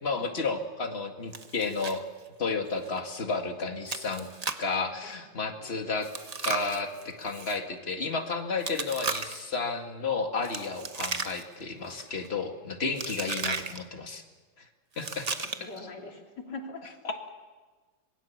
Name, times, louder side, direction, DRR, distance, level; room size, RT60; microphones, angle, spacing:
voice 1, 0.0-2.0 2.4-4.3 4.6-6.1 6.4-14.2 14.6-14.7 15.0-15.3 15.6-15.9 17.0-17.3, left 4 dB, 30° left, 4 dB, 2.1 m, -32 dB
Chewing mastication, 1.3-2.0 2.3-2.4 2.9-3.0 3.9-4.7 6.0-7.6 8.6-9.5 10.4-11.6 11.9-12.3 13.0-13.8 14.9-15.8, right 4 dB, 35° right, 0.6 m, -35 dB
voice 2, 5.6-6.0 15.6-16.9, left 3 dB, 60° left, 1 dB, 3.7 m, -42 dB
26.0 x 21.5 x 7.2 m, 1.3 s
omnidirectional pair, 2.1 m